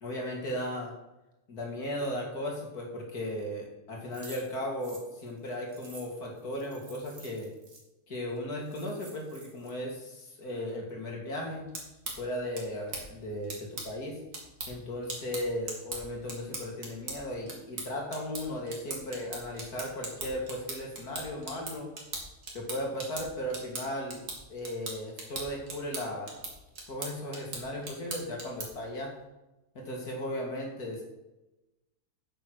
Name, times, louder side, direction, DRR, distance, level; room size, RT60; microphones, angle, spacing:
voice 1, 0.0-0.9 1.5-7.5 8.1-11.6 12.2-14.2 14.7-21.9 22.5-24.2 24.5-26.4 26.9-29.1 29.7-31.0, left 1 dB, 75° left, 0 dB, 3.2 m, -36 dB
sound 1, 4.1-7.8 8.4-8.5 8.6-9.7, right 3 dB, 45° right, 2.3 m, -51 dB
sound 2, 11.5-28.9, right 3 dB, 75° right, 3.1 m, -41 dB
9.7 x 7.8 x 6.5 m, 1.0 s
omnidirectional pair, 1.7 m